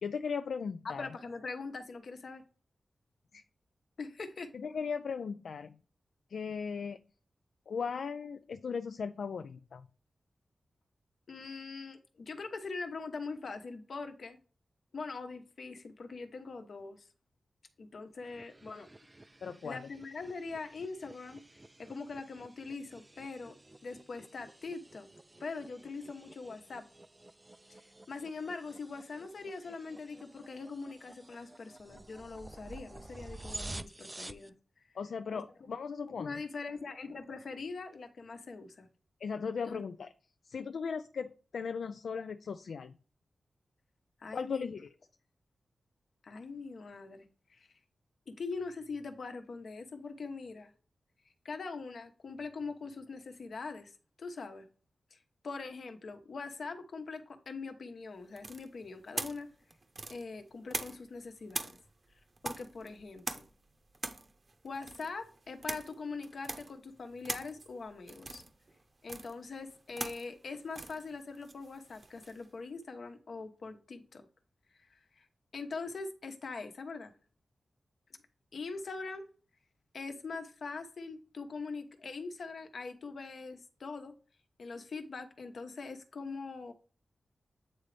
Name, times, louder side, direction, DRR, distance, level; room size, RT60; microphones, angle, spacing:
voice 1, 0.0-1.1 3.3-3.4 4.5-5.8 6.3-7.0 7.7-9.9 19.4-19.9 34.9-36.4 39.2-40.1 40.4-43.0 44.3-44.9, left 6 dB, 80° left, 0.3 m, -37 dB
voice 2, 0.8-2.4 4.0-4.5 11.3-14.4 14.9-17.1 17.8-18.9 19.6-21.4 21.8-23.6 23.8-25.1 25.4-26.9 27.7-34.5 35.3-35.4 36.2-38.9 39.6-39.8 44.2-44.7 46.2-47.7 48.3-50.7 51.4-54.7 55.1-55.2 55.4-59.5 60.1-61.8 62.4-63.4 64.6-68.4 69.0-74.2 74.8-75.3 75.5-77.1 78.5-79.3 79.9-84.1 84.6-86.7, left 4 dB, 65° left, 1.0 m, -42 dB
sound 1, 18.2-34.5, right 2 dB, 20° right, 0.4 m, -51 dB
sound 2, 58.4-61.2 61.5-72.5, right 3 dB, 40° right, 0.8 m, -43 dB
8.7 x 3.9 x 3.3 m
wide cardioid pair, 100°, 0 cm